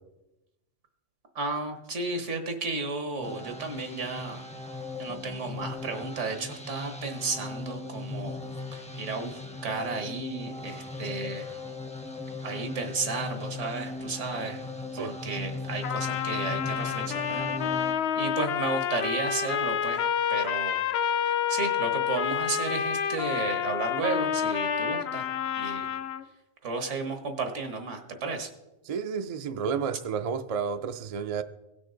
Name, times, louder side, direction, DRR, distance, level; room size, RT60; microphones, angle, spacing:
voice 1, 1.3-4.4 5.0-8.4 8.7-11.5 12.4-14.6 15.0-17.9 18.1-20.8 21.3-25.3 25.6-25.9 26.6-28.5, right 3 dB, 80° right, 6 dB, 1.6 m, -33 dB
sound 1, 3.2-17.9, left 3 dB, 10° left, 0.5 m, -38 dB
Trumpet, 15.8-26.2, left 8 dB, 65° left, 0.8 m, -29 dB
voice 2, 28.9-31.4, right 6 dB, 50° right, 9 dB, 0.4 m, -31 dB
17.0 x 6.1 x 3.8 m, 0.97 s
omnidirectional pair, 1.2 m